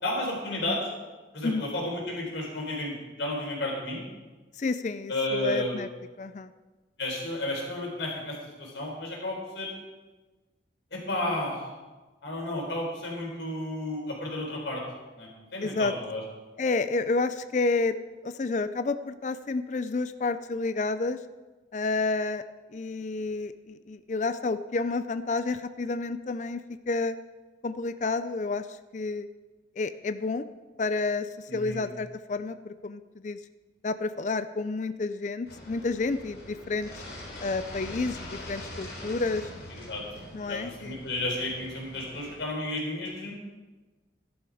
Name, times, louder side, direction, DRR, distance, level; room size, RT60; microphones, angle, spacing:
voice 1, 0.0-0.9 1.3-4.0 5.1-5.8 7.0-9.7 10.9-11.7 12.2-14.8 15.1-16.2 31.5-31.8 39.7-40.0 40.4-43.3, left 1 dB, 85° left, -1 dB, 4.2 m, -32 dB
voice 2, 4.6-5.9 6.2-6.5 15.6-15.9 16.6-18.0 18.2-21.2 21.7-22.4 22.7-27.2 27.6-29.3 29.8-30.5 30.8-33.4 33.8-36.9 37.4-39.5 40.3-41.0, left 3 dB, 40° left, 12 dB, 0.4 m, -30 dB
sound 1, 35.4-42.4, left 1 dB, 55° left, 3.5 m, -43 dB
13.5 x 11.5 x 4.9 m, 1.2 s
head